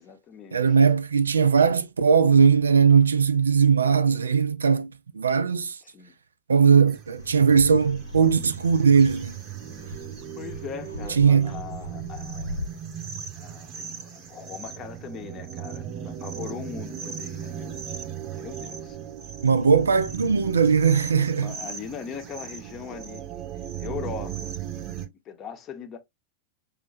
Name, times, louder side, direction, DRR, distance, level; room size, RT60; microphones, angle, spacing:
voice 1, 0.0-0.8 5.8-6.1 10.4-12.6 13.4-17.8 18.3-19.0 21.4-23.3 23.8-24.6 25.2-26.0, left 7 dB, 30° left, 0.7 m, -40 dB
voice 2, 0.5-5.8 6.5-9.3 11.2-11.5 19.4-21.5, right 6 dB, 70° right, 0.3 m, -19 dB
sound 1, 6.9-25.1, right 8 dB, 35° right, 0.7 m, -37 dB
Fixed-wing aircraft airplane, 7.2-12.7, left 1 dB, 80° left, 0.4 m, -39 dB
5.3 x 2.1 x 2.5 m
figure-of-eight pair, 90°, 0 cm